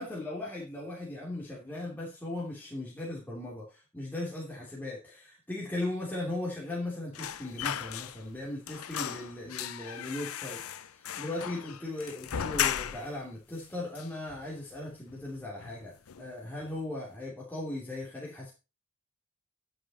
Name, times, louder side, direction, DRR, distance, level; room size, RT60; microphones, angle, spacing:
voice 1, 0.0-18.5, left 2 dB, 10° left, -5 dB, 3.0 m, -38 dB
sound 1, 7.1-8.4 8.7-13.2 13.5-13.6 13.9-14.8 15.1-15.3 15.6-16.3 16.6-16.8, left 9 dB, 90° left, 0.6 m, -36 dB
10.5 x 7.9 x 4.3 m, 0.29 s
head